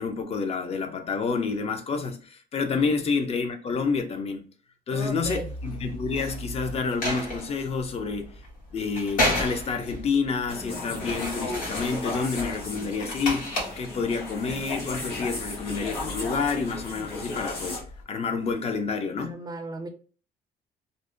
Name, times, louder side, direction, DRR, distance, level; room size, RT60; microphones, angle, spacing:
voice 1, 0.0-4.5 4.9-8.3 8.7-19.4, left 5 dB, 40° left, 0.5 m, -29 dB
voice 2, 2.6-3.1 4.9-5.5 19.2-19.9, right 1 dB, 25° right, 0.4 m, -37 dB
sound 1, 5.2-18.0, left 1 dB, 55° left, 1.2 m, -34 dB
sound 2, 10.5-17.8, left 2 dB, 75° left, 1.2 m, -36 dB
2.6 x 2.1 x 2.5 m
cardioid pair, 110°, 17 cm